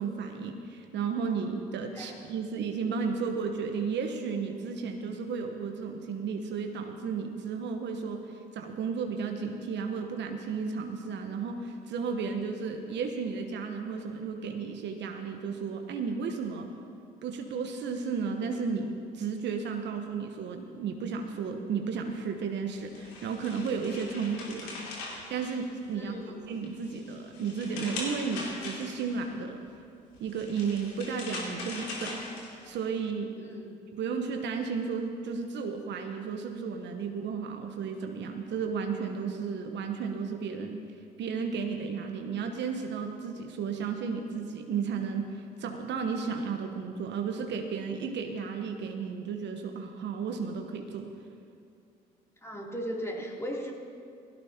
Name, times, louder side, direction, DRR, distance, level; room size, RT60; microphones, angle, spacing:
voice 1, 0.0-16.7 17.2-24.7 25.3-26.2 26.5-29.6 30.2-32.2 32.6-33.3 33.9-40.8 41.2-51.1, right 5 dB, 60° right, 4 dB, 1.1 m, -33 dB
sound 1, 22.7-26.1 26.5-29.2 30.1-32.9, left 3 dB, 80° left, 2.6 m, -41 dB
voice 2, 25.9-26.4 33.4-33.7 52.4-53.7, equal, 15° left, -2 dB, 3.0 m, -37 dB
16.5 x 16.5 x 2.9 m, 2.5 s
hypercardioid pair, 50°, 21 cm